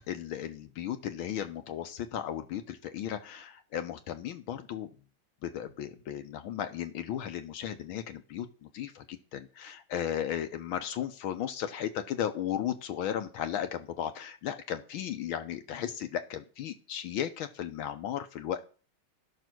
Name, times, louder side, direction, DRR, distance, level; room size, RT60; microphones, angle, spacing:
voice 1, 0.1-4.9 5.4-18.6, left 10 dB, 80° left, 8 dB, 1.7 m, -35 dB
11.5 x 6.2 x 6.1 m, 0.38 s
omnidirectional pair, 2.3 m